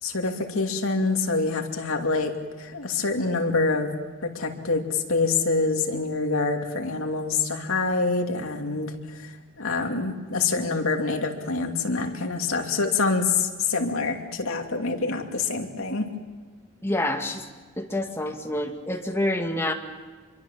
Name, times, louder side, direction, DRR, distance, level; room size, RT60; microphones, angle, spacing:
voice 1, 0.0-2.3 2.6-3.9 4.2-16.1, left 3 dB, 80° left, 3 dB, 2.6 m, -26 dB
voice 2, 16.8-17.4 17.8-19.7, left 1 dB, 10° left, 4 dB, 1.9 m, -27 dB
26.0 x 23.0 x 7.4 m, 1.3 s
head